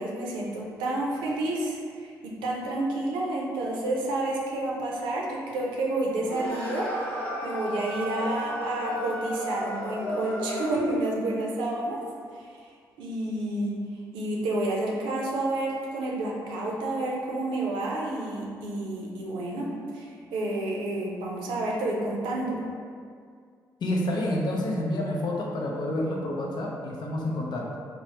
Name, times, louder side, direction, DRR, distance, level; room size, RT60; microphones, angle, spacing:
voice 1, 0.0-12.0 12.3-12.5 13.0-13.8 14.1-22.6, right 2 dB, 85° right, -2 dB, 0.5 m, -30 dB
sound 1, 6.2-11.1, equal, 20° left, 0.9 m, -33 dB
voice 2, 23.8-27.8, left 1 dB, 60° left, -1 dB, 0.5 m, -29 dB
3.1 x 2.0 x 2.8 m, 2.1 s
supercardioid pair, 55°, 8 cm